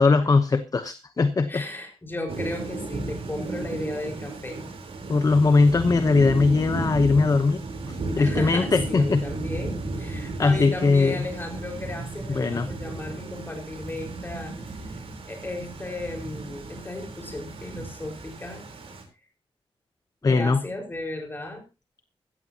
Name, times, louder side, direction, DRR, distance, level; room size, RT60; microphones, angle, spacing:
voice 1, 0.0-1.6 5.1-7.6 7.9-9.2 10.4-11.2 12.4-12.7 20.2-20.6, left 4 dB, 40° left, 11 dB, 0.9 m, -20 dB
voice 2, 1.5-4.6 8.2-15.0 15.3-18.7 20.2-21.7, left 2 dB, 20° left, 2 dB, 4.9 m, -35 dB
Thunder / Rain, 2.3-19.0, right 3 dB, 80° right, 3.9 m, -34 dB
16.0 x 14.5 x 2.9 m, 0.27 s
wide cardioid pair, 120°, 10 cm